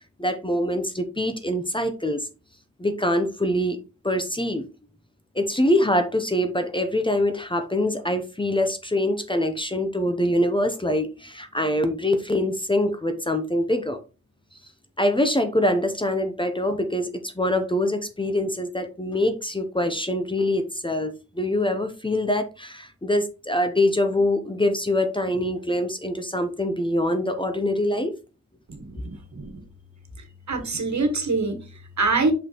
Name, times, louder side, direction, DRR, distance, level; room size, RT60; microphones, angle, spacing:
voice 1, 0.2-2.3 2.8-3.8 4.0-4.6 5.3-14.0 15.0-28.1, left 1 dB, 15° left, 7 dB, 0.7 m, -24 dB
voice 2, 28.7-29.6 30.5-32.3, right 3 dB, 65° right, 6 dB, 1.5 m, -25 dB
6.3 x 5.3 x 3.0 m, 0.31 s
wide cardioid pair, 110°, 31 cm